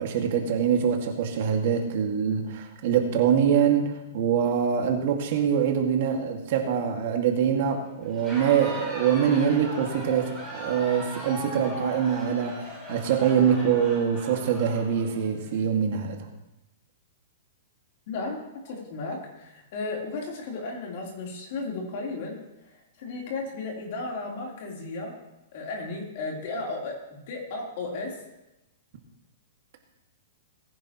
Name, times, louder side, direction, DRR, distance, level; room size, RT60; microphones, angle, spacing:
voice 1, 0.0-16.3, right 8 dB, 55° right, 2 dB, 2.1 m, -24 dB
Crowd, 8.1-15.6, equal, 5° left, 4.7 m, -39 dB
voice 2, 18.1-25.2 25.5-28.2, left 3 dB, 50° left, -1 dB, 3.7 m, -34 dB
19.5 x 10.5 x 3.1 m, 0.94 s
hypercardioid pair, 160°, 0 cm